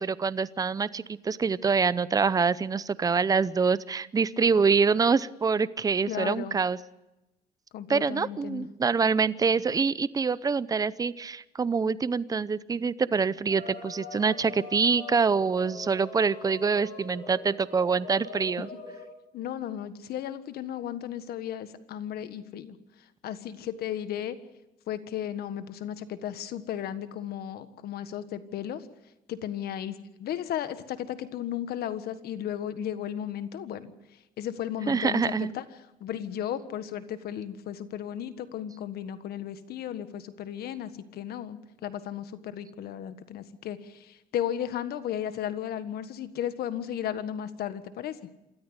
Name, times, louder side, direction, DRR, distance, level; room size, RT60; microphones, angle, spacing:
voice 1, 0.0-6.8 7.9-18.7 34.9-35.5, right 5 dB, 20° right, 18 dB, 0.6 m, -25 dB
voice 2, 6.1-6.6 7.7-8.7 19.3-22.8 23.2-24.4 24.9-28.9 29.3-33.9 34.4-35.6 36.0-48.2, left 10 dB, 70° left, 12 dB, 1.5 m, -35 dB
sound 1, 13.5-19.1, left 3 dB, 50° left, 5.8 m, -42 dB
27.0 x 13.5 x 8.1 m, 0.96 s
cardioid pair, 110°, 17 cm